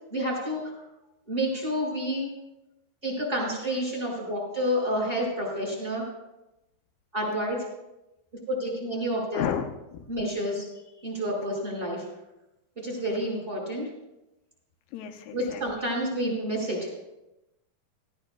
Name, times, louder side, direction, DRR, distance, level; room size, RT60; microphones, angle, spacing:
voice 1, 0.1-0.6 1.3-2.3 3.0-6.1 7.1-7.7 8.5-9.4 10.1-10.7 11.0-12.0 12.8-13.9 15.3-16.9, equal, 15° right, -4 dB, 4.9 m, -29 dB
voice 2, 9.3-10.1 14.9-15.9, left 9 dB, 85° left, 5 dB, 2.8 m, -33 dB
19.0 x 15.5 x 2.3 m, 0.94 s
omnidirectional pair, 4.5 m